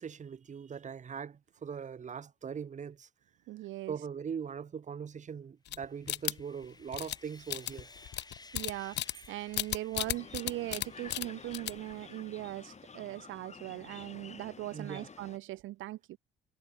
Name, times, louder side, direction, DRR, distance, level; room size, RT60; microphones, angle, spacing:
voice 1, 0.0-3.1 3.9-7.9 14.7-15.1, right 7 dB, 40° right, 1.0 m, -41 dB
voice 2, 3.5-3.9 8.5-16.2, right 16 dB, 80° right, 0.6 m, -40 dB
sound 1, 5.7-6.6 6.9-7.2 7.5-9.3 9.5-10.9 11.1-11.3 11.5-11.9, left 13 dB, 60° left, 0.4 m, -34 dB
Sawing, 5.7-13.2, left 3 dB, 20° left, 2.5 m, -57 dB
sound 2, 9.9-15.4, left 5 dB, 35° left, 2.7 m, -51 dB
cardioid pair, 90°, 20 cm